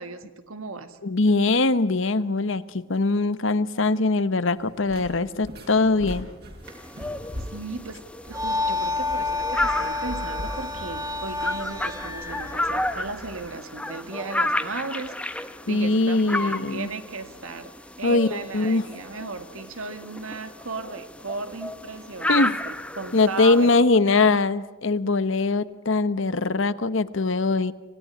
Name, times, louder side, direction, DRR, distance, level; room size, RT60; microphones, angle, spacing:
voice 1, 0.0-1.0 7.5-17.7 18.0-24.1, right 3 dB, 85° right, 9 dB, 2.1 m, -36 dB
voice 2, 1.0-6.3 15.7-16.9 18.0-18.8 22.3-22.5 23.1-27.7, left 3 dB, 65° left, 15 dB, 1.0 m, -22 dB
sound 1, 4.5-11.9, equal, 50° right, 5.5 m, -40 dB
sound 2, 6.6-23.8, left 1 dB, 5° left, 0.8 m, -32 dB
sound 3, 8.3-13.5, left 3 dB, 15° right, 2.0 m, -30 dB
26.5 x 17.0 x 9.9 m, 1.1 s
head